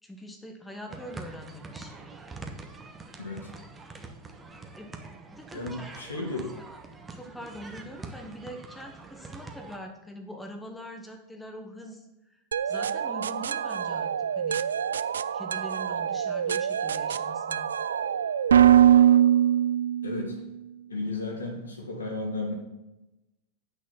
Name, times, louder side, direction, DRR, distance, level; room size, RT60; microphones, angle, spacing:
voice 1, 0.0-1.9 4.8-5.9 6.3-6.8 7.1-14.7 15.3-17.7, equal, 5° left, 3 dB, 1.2 m, -43 dB
sound 1, 0.9-9.8, right 3 dB, 15° right, 1.1 m, -44 dB
voice 2, 3.2-3.5 5.5-6.5 20.0-20.4 20.9-22.5, left 2 dB, 70° left, 1 dB, 2.4 m, -33 dB
sound 2, 12.5-20.3, right 10 dB, 65° right, 0.3 m, -23 dB
8.9 x 6.4 x 5.8 m, 0.96 s
figure-of-eight pair, 90°, 0 cm